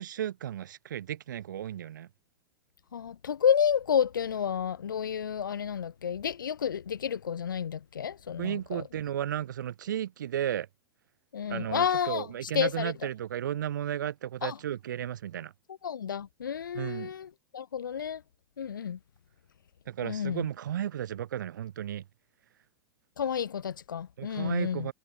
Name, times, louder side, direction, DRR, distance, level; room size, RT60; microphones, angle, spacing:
voice 1, 0.0-2.1 8.4-10.7 11.5-15.5 16.7-17.1 19.9-22.0 24.2-24.9, right 10 dB, 60° right, 3.4 m, -34 dB
voice 2, 2.9-8.8 11.3-12.9 14.4-14.6 15.8-18.2 18.6-19.0 20.0-20.4 23.2-24.9, left 8 dB, 70° left, 0.9 m, -30 dB
figure-of-eight pair, 90°, 11 cm